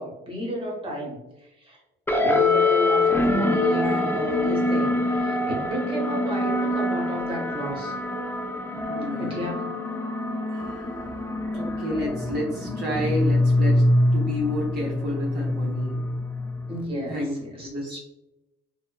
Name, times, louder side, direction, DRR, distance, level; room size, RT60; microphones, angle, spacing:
voice 1, 0.0-1.8 2.2-7.9 9.2-9.7 16.7-18.0, equal, 25° right, -2 dB, 1.0 m, -32 dB
sound 1, 2.1-16.8, left 2 dB, 10° left, 0.3 m, -24 dB
voice 2, 8.9-9.3 10.5-10.9 11.5-13.8 14.1-16.1 16.9-17.3 17.6-18.0, equal, 55° right, -4 dB, 0.6 m, -30 dB
2.8 x 2.1 x 2.3 m, 0.92 s
cardioid pair, 90°, 20 cm